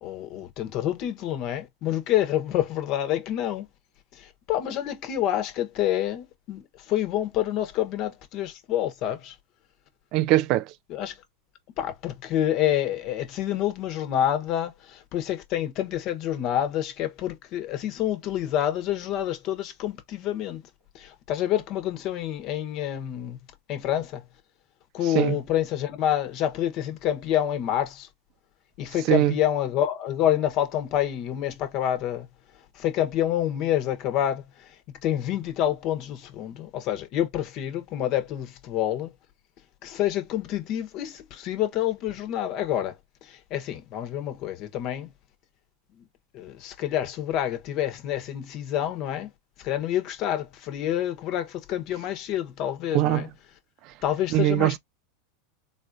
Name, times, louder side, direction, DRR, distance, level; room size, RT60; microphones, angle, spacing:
voice 1, 0.0-3.6 4.1-9.4 10.9-11.2 11.8-20.6 20.9-23.4 23.7-24.2 24.9-28.1 28.8-32.3 32.7-39.1 39.8-43.0 43.2-45.1 46.0-46.1 46.3-49.3 49.6-53.3 54.0-54.8, left 11 dB, 50° left, 0.9 m, -28 dB
voice 2, 10.1-10.7 25.1-25.4 29.1-29.3 52.9-53.2 54.3-54.8, right 15 dB, 55° right, 0.3 m, -21 dB
4.0 x 2.5 x 2.5 m
hypercardioid pair, 100°, 0 cm